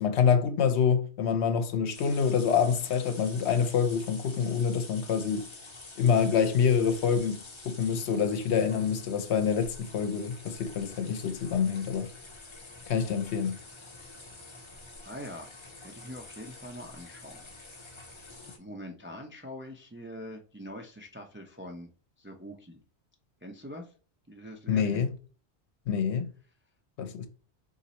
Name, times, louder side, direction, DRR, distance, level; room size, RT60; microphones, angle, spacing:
voice 1, 0.0-5.5 6.0-7.4 7.6-12.1 12.9-13.6 24.7-25.1 25.9-26.3 27.0-27.3, left 7 dB, 80° left, 0.9 m, -26 dB
sound 1, 1.9-18.6, left 2 dB, 30° left, 0.8 m, -47 dB
voice 2, 15.0-15.5 15.8-17.4 18.1-18.2 18.6-21.9 22.2-22.8 23.4-23.9 24.3-25.0, equal, 20° right, 0.4 m, -43 dB
4.0 x 2.6 x 4.1 m
omnidirectional pair, 1.1 m